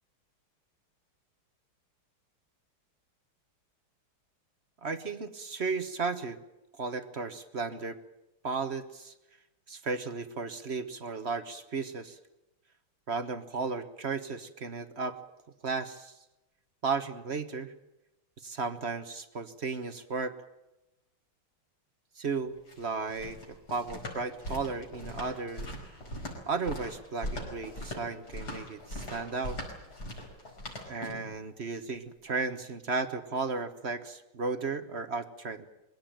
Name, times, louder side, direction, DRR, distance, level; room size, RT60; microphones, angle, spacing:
voice 1, 4.8-6.4 6.8-8.0 8.4-9.1 9.7-12.2 13.1-15.2 15.6-16.2 16.8-17.7 18.4-20.4 22.2-25.8 26.5-29.6 30.9-35.7, right 4 dB, 40° right, 10 dB, 1.1 m, -34 dB
sound 1, 22.5-31.3, left 1 dB, 50° left, 5.6 m, -40 dB
22.5 x 17.0 x 9.0 m, 0.95 s
omnidirectional pair, 2.3 m